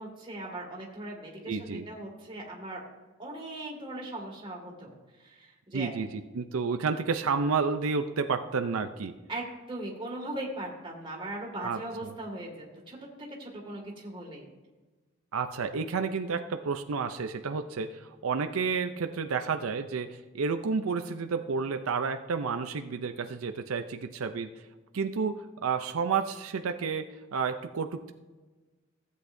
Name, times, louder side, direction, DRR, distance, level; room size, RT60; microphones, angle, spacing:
voice 1, 0.0-2.8 3.2-5.9 9.3-13.0 13.4-14.5, right 1 dB, 25° right, -1 dB, 2.1 m, -39 dB
voice 2, 1.5-1.8 5.7-9.1 11.6-12.1 15.3-24.5 24.9-27.0 27.3-28.1, right 5 dB, 85° right, 7 dB, 0.5 m, -31 dB
15.5 x 8.3 x 2.6 m, 1.3 s
head